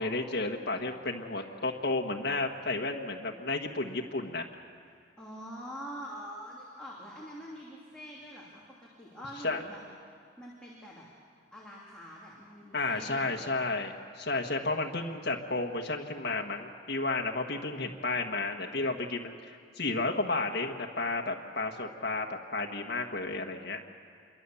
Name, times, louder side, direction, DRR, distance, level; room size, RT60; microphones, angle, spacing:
voice 1, 0.0-4.4 9.4-9.6 12.7-23.8, left 3 dB, 55° left, 2 dB, 1.4 m, -32 dB
voice 2, 5.2-9.8 10.4-11.1 11.5-13.5, equal, 5° left, -6 dB, 3.0 m, -45 dB
26.0 x 23.0 x 7.0 m, 2.2 s
head